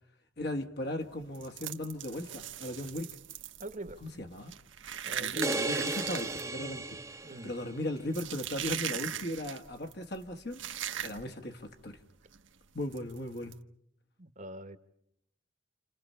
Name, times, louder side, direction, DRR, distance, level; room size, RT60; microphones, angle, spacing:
voice 1, 0.4-3.1 4.0-4.5 5.2-7.0 7.4-10.6 11.0-12.0 12.7-13.5, left 1 dB, 55° left, 1.6 m, -37 dB
sound 1, 1.0-11.5 11.8-12.0 12.3-12.5 12.9-13.6, right 10 dB, 75° right, 1.3 m, -40 dB
voice 2, 3.6-4.2 5.0-5.6 7.2-7.5 14.2-14.8, right 2 dB, 40° right, 1.4 m, -43 dB
sound 2, 5.4-7.8, right 3 dB, 15° right, 1.0 m, -35 dB
29.0 x 29.0 x 5.6 m
head